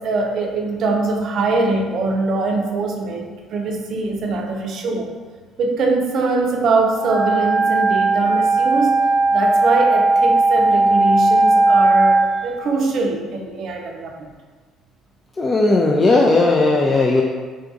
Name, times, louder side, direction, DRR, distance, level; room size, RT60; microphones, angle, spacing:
voice 1, 0.0-5.2 5.6-9.0 9.3-14.3, right 3 dB, 60° right, 2 dB, 0.5 m, -22 dB
Wind instrument woodwind instrument, 7.0-12.3, right 2 dB, 25° right, 0.8 m, -16 dB
voice 2, 15.4-17.2, left 2 dB, 35° left, -1 dB, 0.3 m, -16 dB
3.7 x 2.3 x 2.6 m, 1.4 s
hypercardioid pair, 65°, 0 cm